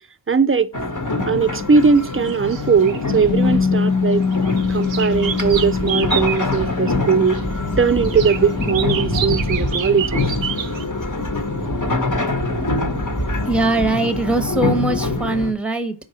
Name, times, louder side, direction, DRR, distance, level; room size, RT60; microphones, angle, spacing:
voice 1, 0.3-0.7 1.3-4.3 4.7-7.4 7.8-10.2, right 5 dB, 30° right, 0.5 m, -19 dB
sound 1, 0.7-15.5, left 2 dB, 40° left, 1.1 m, -24 dB
sound 2, 2.0-3.6 4.1-7.4 8.0-10.8, right 8 dB, 75° right, 0.6 m, -29 dB
Bass guitar, 3.3-9.5, left 5 dB, 75° left, 1.5 m, -24 dB
voice 2, 13.5-15.9, right 2 dB, ahead, 0.9 m, -21 dB
4.7 x 3.7 x 5.5 m
wide cardioid pair, 55°, 46 cm